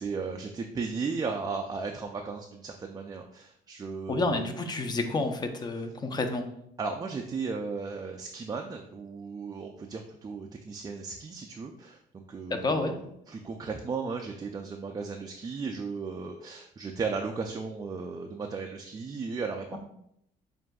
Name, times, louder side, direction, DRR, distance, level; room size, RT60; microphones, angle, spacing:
voice 1, 0.0-4.5 6.8-19.8, right 4 dB, 20° right, 2 dB, 0.4 m, -35 dB
voice 2, 4.1-6.4 12.5-12.9 19.7-19.8, left 3 dB, 25° left, 6 dB, 0.6 m, -29 dB
7.3 x 2.6 x 2.3 m, 0.74 s
cardioid pair, 110°, 17 cm